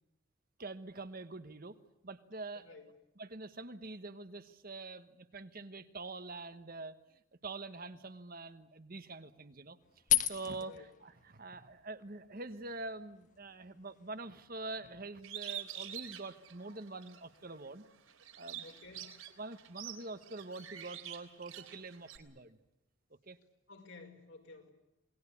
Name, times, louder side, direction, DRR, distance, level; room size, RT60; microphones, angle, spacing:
voice 1, 0.6-1.8 2.0-2.8 3.2-9.8 10.3-17.8 18.4-18.6 19.4-22.6 23.3-23.4, right 3 dB, 40° right, 10 dB, 1.2 m, -45 dB
voice 2, 2.5-2.9 10.6-10.9 18.6-19.2 23.7-24.7, left 3 dB, 65° left, 4 dB, 5.3 m, -53 dB
sound 1, 9.8-15.0, left 13 dB, 35° left, 1.5 m, -38 dB
Bird, 15.2-17.2 17.7-22.2, right 11 dB, 80° right, 3.6 m, -46 dB
28.0 x 20.5 x 8.5 m, 0.88 s
head